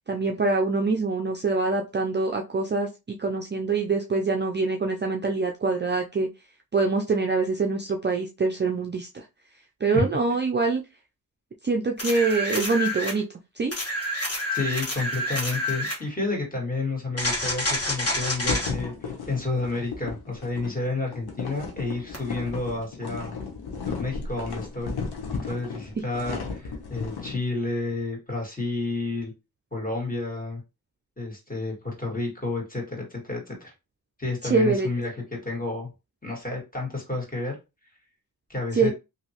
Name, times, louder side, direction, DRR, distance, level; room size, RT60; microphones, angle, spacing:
voice 1, 0.1-2.9 3.2-6.3 6.7-9.2 9.8-10.8 11.6-13.2 13.6-13.7 34.5-34.9 38.7-38.9, right 3 dB, 30° right, 2 dB, 0.4 m, -24 dB
sound 1, 12.0-13.2 13.7-16.0 17.2-18.7 22.1-22.2, left 1 dB, 40° left, 1.5 m, -28 dB
voice 2, 14.5-23.4 23.9-25.0 25.3-29.3 29.7-30.6 31.2-33.7 34.2-35.9 36.2-37.6 38.5-38.9, left 3 dB, 20° left, -2 dB, 1.9 m, -30 dB
sound 2, 18.5-27.4, left 5 dB, 85° left, 0.9 m, -35 dB
2.9 x 2.7 x 2.9 m, 0.26 s
cardioid pair, 60°, 38 cm